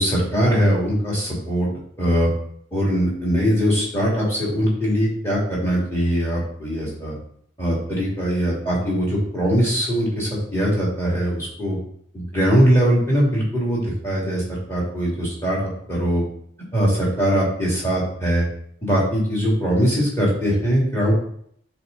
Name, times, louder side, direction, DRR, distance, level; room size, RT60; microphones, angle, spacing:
voice 1, 0.0-1.7 2.0-2.3 2.7-7.1 7.6-11.8 12.1-16.2 16.7-18.4 18.8-21.1, equal, 15° left, -4 dB, 2.1 m, -21 dB
7.7 x 3.3 x 3.9 m, 0.65 s
head